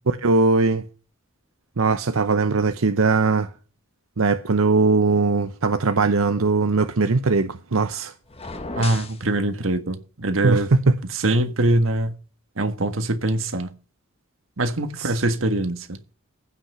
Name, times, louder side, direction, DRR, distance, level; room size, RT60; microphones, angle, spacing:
voice 1, 0.1-0.8 1.8-3.5 4.2-8.1 10.4-10.9 15.0-15.1, right 3 dB, 85° right, 0.8 m, -20 dB
sound 1, 8.3-9.2, left 3 dB, 30° left, 1.6 m, -33 dB
voice 2, 8.8-10.7 11.1-12.2 12.6-13.7 14.6-16.0, right 1 dB, 70° right, 1.5 m, -23 dB
15.5 x 6.0 x 5.6 m
head